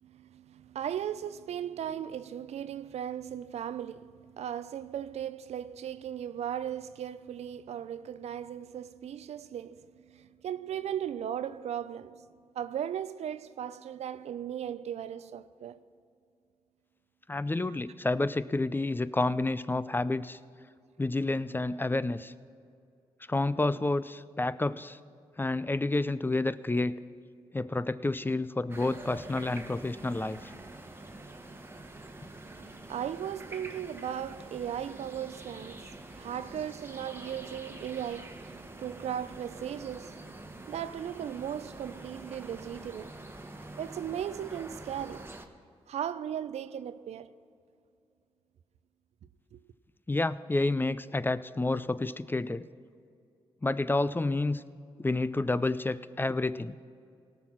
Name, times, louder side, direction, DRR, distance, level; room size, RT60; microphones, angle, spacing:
voice 1, 0.0-12.2 12.6-15.8 32.5-43.2 43.8-45.3 45.9-47.3 49.5-49.6, right 9 dB, 75° right, 0.4 m, -37 dB
voice 2, 17.3-20.4 21.0-22.3 23.3-25.0 25.4-27.0 27.5-30.5 50.1-52.6 53.6-54.6 55.0-56.8, left 2 dB, 20° left, 0.4 m, -29 dB
sound 1, 28.7-45.5, right 2 dB, 20° right, 1.2 m, -46 dB
17.5 x 6.1 x 6.0 m
supercardioid pair, 45°, 11 cm